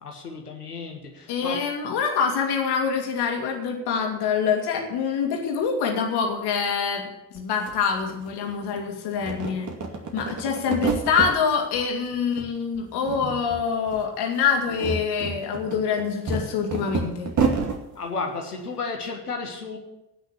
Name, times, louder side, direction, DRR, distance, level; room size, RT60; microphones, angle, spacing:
voice 1, 0.0-1.6 17.9-19.8, left 4 dB, 85° left, 2 dB, 1.8 m, -33 dB
voice 2, 1.3-9.7 10.1-17.3, left 6 dB, 60° left, 2 dB, 2.8 m, -25 dB
sound 1, 7.4-7.5 7.7-8.8 9.1-11.3 11.7-12.5 12.7-13.6 13.9-14.0 14.5-17.8, right 4 dB, 40° right, 2.4 m, -29 dB
18.0 x 6.4 x 8.4 m, 0.91 s
figure-of-eight pair, 45°, 45 cm